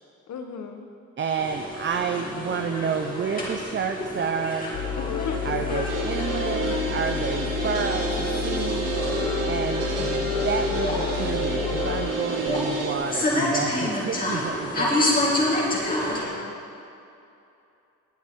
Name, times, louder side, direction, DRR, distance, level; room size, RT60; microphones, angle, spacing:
voice 1, 0.3-0.8 5.0-5.6 16.1-16.5, left 4 dB, 60° left, 5 dB, 1.3 m, -35 dB
voice 2, 1.2-4.8 5.4-8.9 9.5-9.9 10.3-15.6, right 6 dB, 35° right, 5 dB, 0.6 m, -30 dB
sound 1, 1.4-16.2, left 1 dB, 25° left, 2.9 m, -29 dB
sound 2, 4.7-12.1, left 12 dB, 75° left, 0.5 m, -31 dB
sound 3, 5.9-12.9, right 2 dB, 90° right, 2.0 m, -29 dB
20.0 x 8.7 x 3.7 m, 2.7 s
cardioid pair, 120°, 32 cm